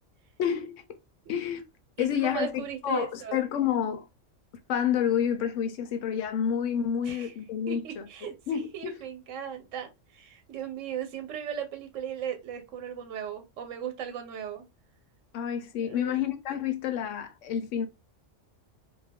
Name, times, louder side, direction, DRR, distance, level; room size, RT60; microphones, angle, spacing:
voice 1, 0.4-0.7 1.3-1.6 2.0-2.5 2.8-4.0 4.7-9.0 15.3-17.9, left 9 dB, 80° left, 0.9 m, -29 dB
voice 2, 2.3-3.4 7.0-7.3 7.7-14.7 15.8-16.2, right 9 dB, 80° right, 1.0 m, -37 dB
2.4 x 2.2 x 3.5 m
omnidirectional pair, 1.3 m